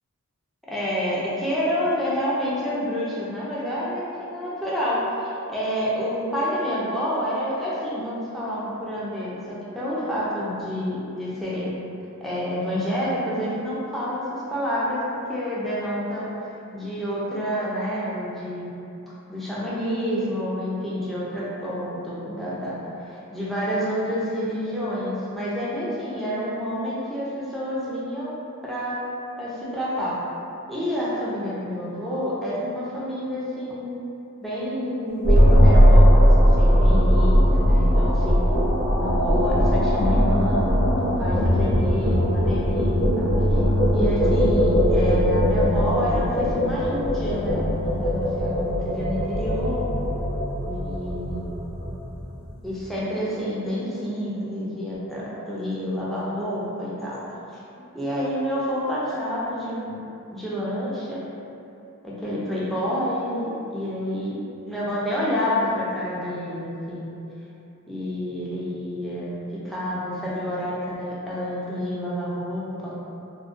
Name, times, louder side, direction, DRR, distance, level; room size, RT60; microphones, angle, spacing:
voice 1, 0.7-11.7 12.2-16.3 16.7-18.7 19.3-28.3 28.6-29.0 29.4-30.2 30.7-33.9 34.4-38.4 39.0-43.6 43.9-49.9 50.6-51.5 52.6-57.2 57.5-57.6 57.9-60.0 60.3-61.2 62.0-64.3 64.7-67.1 67.9-73.0, equal, ahead, -9 dB, 0.4 m, -28 dB
sound 1, 35.2-52.5, equal, 45° left, 0.7 m, -19 dB
2.5 x 2.1 x 2.4 m, 2.8 s
head